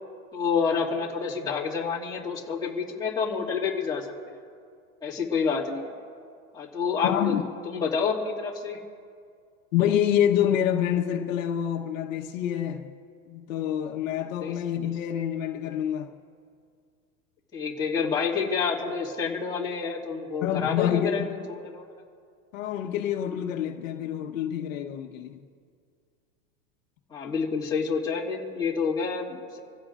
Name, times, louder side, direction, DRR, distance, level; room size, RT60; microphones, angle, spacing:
voice 1, 0.3-4.4 5.0-5.9 6.5-7.4 7.6-8.8 14.4-14.6 17.5-21.9 27.1-29.6, left 5 dB, 10° left, 2.1 m, -28 dB
voice 2, 7.0-7.4 9.7-12.9 13.3-16.1 20.4-21.4 22.5-25.4, left 10 dB, 65° left, 1.2 m, -27 dB
27.5 x 16.0 x 2.5 m
supercardioid pair, 170°, 43 cm